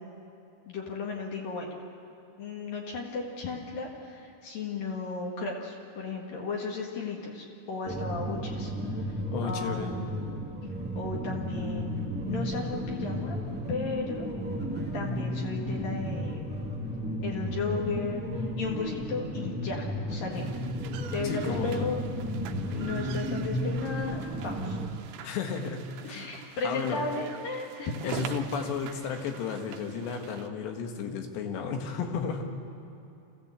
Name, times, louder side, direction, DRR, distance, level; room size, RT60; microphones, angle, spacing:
voice 1, 0.7-1.7 2.4-8.7 9.4-10.2 10.9-13.4 13.7-14.3 14.9-16.4 17.2-18.2 18.6-20.5 21.1-22.0 22.7-24.8 26.0-28.1, left 4 dB, 60° left, -1 dB, 3.2 m, -35 dB
sound 1, 7.8-24.9, equal, 10° right, 0.4 m, -33 dB
voice 2, 9.3-9.9 21.2-21.8 25.2-26.3 26.6-27.0 28.0-32.5, left 6 dB, 75° left, 4 dB, 3.8 m, -33 dB
sound 2, 20.3-30.5, right 10 dB, 80° right, 2.8 m, -45 dB
26.5 x 15.0 x 8.1 m, 2.8 s
omnidirectional pair, 5.1 m